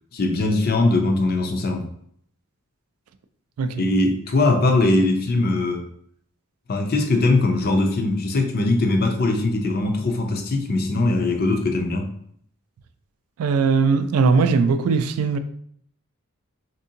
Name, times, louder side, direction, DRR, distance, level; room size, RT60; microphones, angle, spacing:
voice 1, 0.1-1.8 3.8-5.9 6.7-12.1, left 2 dB, 45° left, 0.5 m, -21 dB
voice 2, 13.4-15.4, right 4 dB, 75° right, 0.3 m, -19 dB
3.6 x 2.6 x 2.7 m
head